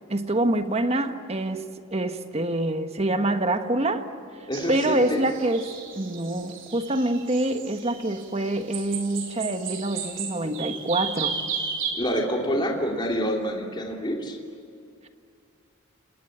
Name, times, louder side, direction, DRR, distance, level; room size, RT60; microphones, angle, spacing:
voice 1, 0.1-4.1 4.7-11.4, right 1 dB, 30° right, 7 dB, 1.4 m, -26 dB
voice 2, 4.5-5.3 11.9-14.4, equal, 25° left, 0 dB, 2.8 m, -27 dB
sound 1, 4.5-11.9, right 6 dB, 65° right, 3.9 m, -34 dB
29.5 x 19.5 x 9.0 m, 2.4 s
head